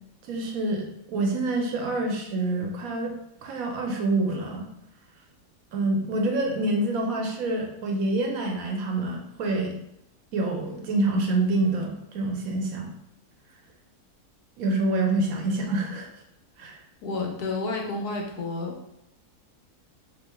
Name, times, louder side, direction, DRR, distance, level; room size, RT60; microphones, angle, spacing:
voice 1, 0.2-3.1 3.4-4.6 5.7-9.7 10.3-12.9 14.6-16.1 16.6-16.8, right 2 dB, 70° right, 1 dB, 1.1 m, -26 dB
voice 2, 17.0-18.7, left 3 dB, 90° left, 1 dB, 1.3 m, -30 dB
4.1 x 3.1 x 2.2 m, 0.80 s
omnidirectional pair, 1.6 m